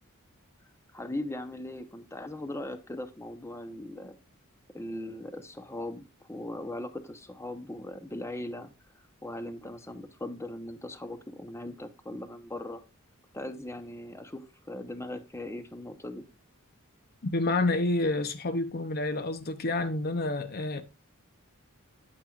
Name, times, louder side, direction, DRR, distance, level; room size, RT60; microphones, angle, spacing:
voice 1, 0.9-4.2 4.7-8.7 9.2-12.8 13.3-16.2, left 1 dB, 10° left, 0.8 m, -39 dB
voice 2, 17.3-20.8, left 2 dB, 45° left, 0.7 m, -28 dB
8.8 x 8.6 x 2.4 m
head